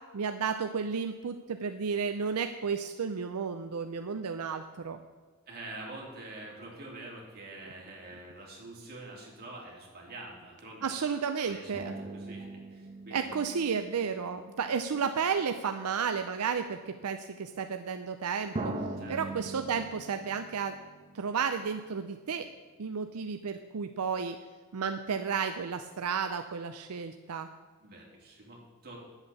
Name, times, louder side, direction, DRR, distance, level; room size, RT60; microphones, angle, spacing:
voice 1, 0.1-5.0 10.8-11.9 13.1-18.8 19.1-20.8 21.1-22.5 22.8-24.4 24.7-27.5, right 6 dB, 80° right, 8 dB, 0.5 m, -32 dB
voice 2, 5.5-11.0 11.4-13.3 19.0-19.2 27.8-29.0, right 2 dB, 45° right, -2 dB, 3.0 m, -46 dB
sound 1, 11.7-15.7 16.5-16.6 18.5-21.9 22.2-22.3, right 2 dB, 30° right, 0.9 m, -42 dB
10.0 x 8.1 x 7.0 m, 1.4 s
head